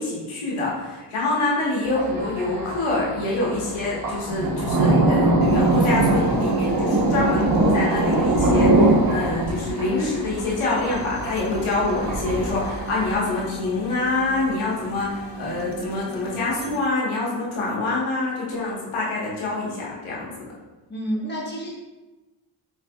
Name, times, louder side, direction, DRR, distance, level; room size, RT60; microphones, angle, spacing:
voice 1, 0.0-20.3, left 2 dB, 85° left, -5 dB, 1.5 m, -26 dB
Thunder, 1.9-13.1, right 2 dB, 45° right, 1.1 m, -22 dB
sound 1, 5.4-16.8, right 2 dB, 45° left, 0.6 m, -34 dB
voice 2, 20.9-21.8, equal, 20° left, -3 dB, 1.2 m, -29 dB
4.7 x 4.6 x 2.4 m, 1.2 s
cardioid pair, 65°, 48 cm